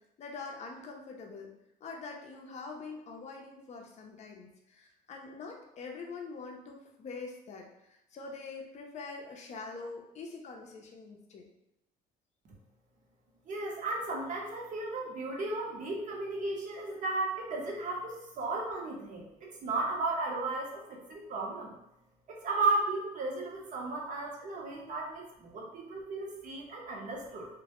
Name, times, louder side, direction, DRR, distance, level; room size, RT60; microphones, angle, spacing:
voice 1, 0.2-1.5 1.8-11.5, left 4 dB, 45° left, 1 dB, 0.5 m, -44 dB
voice 2, 13.5-21.7 22.4-27.5, right 3 dB, 50° right, -1 dB, 0.7 m, -34 dB
2.1 x 2.0 x 2.9 m, 0.86 s
cardioid pair, 110°, 17 cm